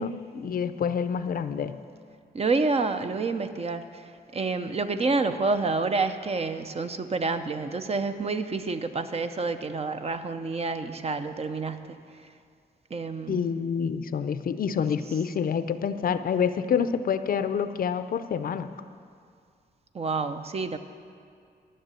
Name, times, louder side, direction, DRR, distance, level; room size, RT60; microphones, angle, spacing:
voice 1, 0.0-1.7 13.3-18.7, left 7 dB, 55° left, 11 dB, 0.5 m, -27 dB
voice 2, 2.3-4.0 4.3-12.0 12.9-13.5 19.9-20.8, right 3 dB, 35° right, 9 dB, 0.7 m, -28 dB
13.0 x 6.7 x 9.0 m, 2.2 s
cardioid pair, 110°, 17 cm